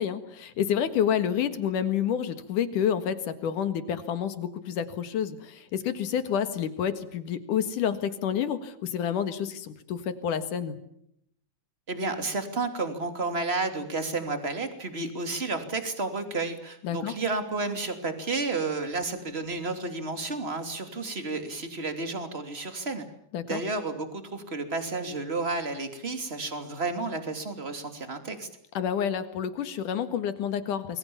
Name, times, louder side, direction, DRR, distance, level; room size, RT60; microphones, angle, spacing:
voice 1, 0.0-10.8 16.8-17.2 23.3-23.6 28.7-31.0, left 8 dB, 70° left, 11 dB, 3.1 m, -29 dB
voice 2, 11.9-23.0 23.5-28.5, right 3 dB, 20° right, 7 dB, 2.8 m, -31 dB
28.5 x 22.0 x 7.2 m, 0.74 s
omnidirectional pair, 3.9 m